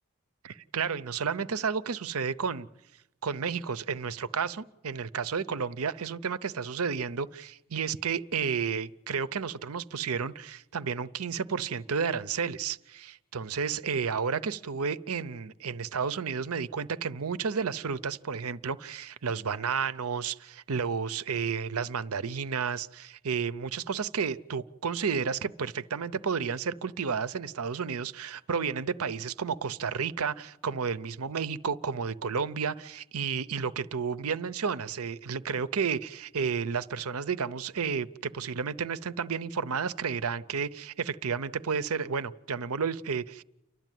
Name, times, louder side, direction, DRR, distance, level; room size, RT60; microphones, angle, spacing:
voice 1, 0.4-2.7 3.2-43.4, right 6 dB, 75° right, 15 dB, 0.7 m, -32 dB
29.0 x 12.0 x 9.2 m, 0.93 s
head